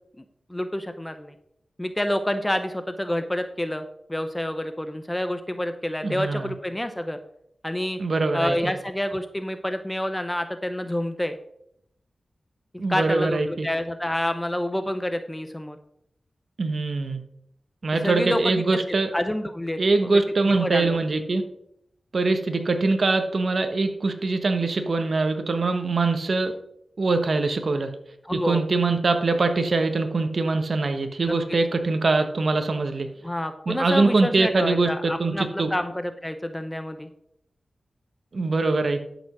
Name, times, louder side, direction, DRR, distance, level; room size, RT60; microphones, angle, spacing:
voice 1, 0.5-1.3 1.8-7.2 7.6-8.0 8.3-11.4 12.9-15.8 18.0-18.8 19.1-19.8 20.1-20.2 20.4-21.0 28.2-28.6 31.2-31.6 33.2-37.1, left 1 dB, 15° left, 8 dB, 0.8 m, -28 dB
voice 2, 6.0-6.5 8.0-8.7 12.8-13.7 16.6-17.2 17.8-19.1 19.8-21.4 22.1-26.6 27.0-27.9 28.3-33.1 33.7-35.7 38.3-39.0, right 3 dB, 65° right, 7 dB, 1.2 m, -23 dB
12.0 x 5.2 x 6.1 m, 0.75 s
cardioid pair, 55°, 0 cm